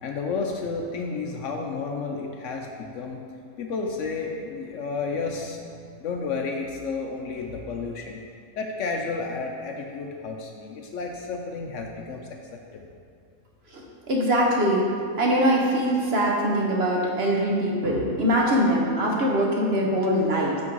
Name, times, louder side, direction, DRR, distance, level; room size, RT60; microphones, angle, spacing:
voice 1, 0.0-3.2 3.6-5.6 6.0-8.2 8.6-12.9, left 4 dB, 65° left, 2 dB, 0.8 m, -31 dB
voice 2, 14.1-14.9 15.2-20.6, equal, 50° right, -2 dB, 0.9 m, -22 dB
6.1 x 5.3 x 4.5 m, 2.3 s
omnidirectional pair, 1.5 m